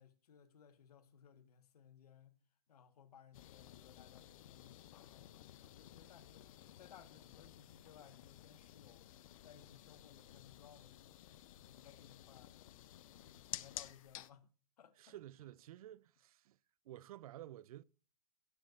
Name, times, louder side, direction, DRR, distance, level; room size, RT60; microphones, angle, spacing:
voice 1, 0.0-2.3 2.7-6.5 6.8-9.1 9.4-12.5 12.9-14.5 14.8-15.2, left 8 dB, 75° left, 1.3 m, -62 dB
sound 1, 3.3-14.3, left 13 dB, 60° left, 0.6 m, -54 dB
voice 2, 15.0-16.6 16.8-17.8, right 13 dB, 65° right, 0.4 m, -52 dB
17.0 x 8.4 x 2.5 m
hypercardioid pair, 125°, 20 cm